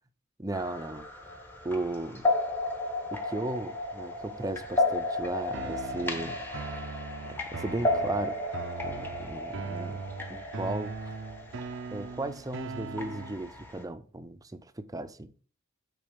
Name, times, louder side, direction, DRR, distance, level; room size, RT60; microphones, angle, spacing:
voice 1, 0.4-1.1 1.6-2.3 3.1-6.4 7.4-8.4 8.8-10.0 10.3-10.9 11.9-15.3, right 2 dB, 15° right, 0.6 m, -35 dB
sound 1, 0.5-13.8, left 2 dB, 10° left, 1.0 m, -34 dB
sound 2, 5.5-13.5, right 4 dB, 65° right, 0.6 m, -40 dB
8.7 x 3.9 x 5.1 m
head